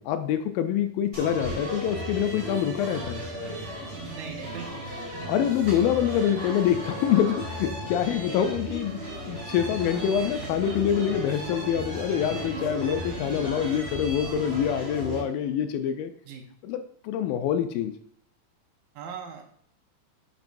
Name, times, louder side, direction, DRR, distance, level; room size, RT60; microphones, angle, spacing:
voice 1, 0.0-3.3 5.3-16.1 16.6-17.9, left 9 dB, 80° left, 8 dB, 2.2 m, -26 dB
sound 1, 1.1-15.2, equal, 25° right, 3.8 m, -35 dB
voice 2, 4.1-5.0 16.3-16.4 18.9-19.4, right 7 dB, 75° right, 3 dB, 2.8 m, -39 dB
10.5 x 6.0 x 2.6 m, 0.67 s
omnidirectional pair, 4.3 m